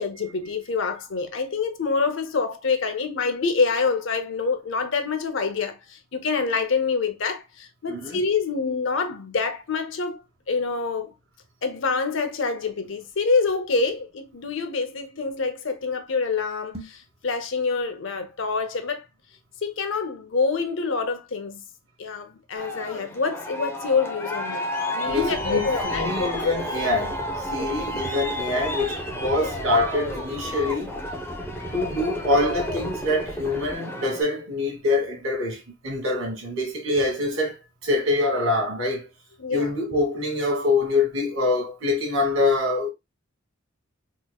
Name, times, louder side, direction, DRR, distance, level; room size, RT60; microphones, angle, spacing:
voice 1, 0.0-10.2 10.5-11.1 11.6-19.0 19.6-21.6 22.0-24.7 24.9-26.4 27.6-27.7 29.4-29.5 39.4-39.7, left 4 dB, 65° left, 0.6 m, -26 dB
voice 2, 7.9-8.2 25.0-27.2 27.5-30.9 31.7-37.5 37.8-39.1 39.5-42.9, left 2 dB, 80° right, 1.7 m, -25 dB
sound 1, 16.6-17.1, right 1 dB, 30° right, 1.0 m, -41 dB
Aircraft, 22.5-34.2, left 1 dB, 10° left, 0.6 m, -31 dB
sound 2, 25.0-33.7, equal, 55° right, 1.3 m, -41 dB
4.3 x 2.9 x 2.3 m
head